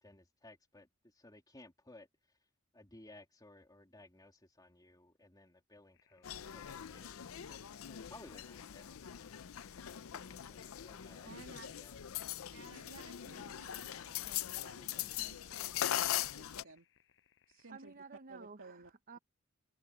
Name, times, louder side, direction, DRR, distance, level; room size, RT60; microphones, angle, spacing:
voice 1, 0.0-2.4 2.7-9.1 10.1-11.4 11.6-12.0, left 2 dB, 20° left, 2.8 m, -59 dB
sound 1, 5.9-18.0, left 8 dB, 65° left, 6.7 m, -73 dB
sound 2, 6.2-16.6, left 11 dB, 90° left, 0.5 m, -41 dB
voice 2, 11.3-11.7 12.5-16.9 17.5-17.9 18.3-18.9, right 3 dB, 75° right, 2.6 m, -56 dB
voice 3, 17.7-19.2, right 4 dB, 45° right, 0.8 m, -52 dB
head